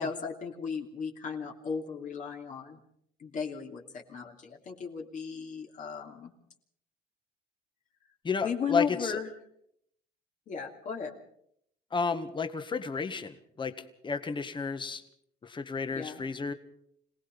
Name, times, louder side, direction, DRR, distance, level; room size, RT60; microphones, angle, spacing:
voice 1, 0.0-2.8 3.2-6.3 8.4-9.3 10.5-11.2 15.9-16.3, left 6 dB, 50° left, 1 dB, 3.0 m, -36 dB
voice 2, 8.2-9.2 11.9-15.0 15.4-16.5, left 5 dB, 30° left, 9 dB, 1.8 m, -32 dB
26.5 x 18.5 x 5.4 m, 0.71 s
cardioid pair, 110°, 17 cm